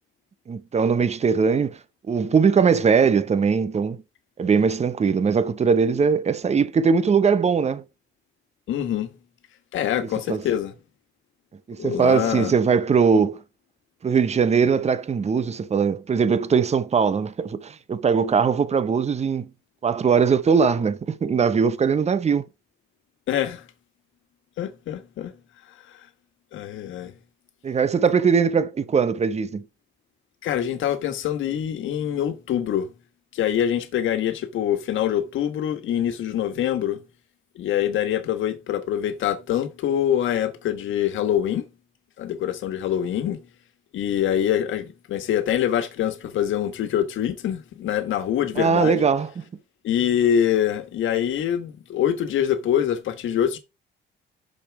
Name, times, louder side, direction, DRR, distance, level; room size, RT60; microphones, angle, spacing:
voice 1, 0.5-1.8 2.1-4.0 4.4-7.8 10.3-10.4 11.7-13.4 14.0-19.5 19.8-22.4 27.6-29.6 48.6-49.3, right 6 dB, 35° right, 0.8 m, -20 dB
voice 2, 8.7-9.1 9.7-10.7 11.8-12.5 23.3-23.7 24.6-25.3 25.9-26.0 26.5-27.1 30.4-32.9 33.3-37.0 37.5-41.6 42.2-43.5 43.9-49.0 49.8-53.6, left 10 dB, 80° left, 1.5 m, -24 dB
6.4 x 6.0 x 4.8 m
cardioid pair, 90°, 20 cm